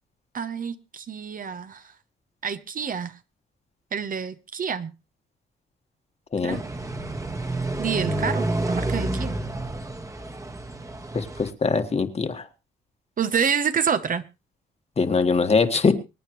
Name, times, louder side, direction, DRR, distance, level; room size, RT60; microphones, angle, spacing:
voice 1, 0.3-1.8 2.4-3.1 3.9-4.9 6.4-6.6 7.8-9.4 13.2-14.2, right 7 dB, 45° right, 11 dB, 0.9 m, -27 dB
sound 1, 6.5-11.5, right 2 dB, 15° right, 1.4 m, -29 dB
voice 2, 11.1-12.5 15.0-15.9, left 4 dB, 30° left, 7 dB, 1.6 m, -22 dB
24.5 x 9.0 x 3.1 m, 0.28 s
cardioid pair, 90°, 20 cm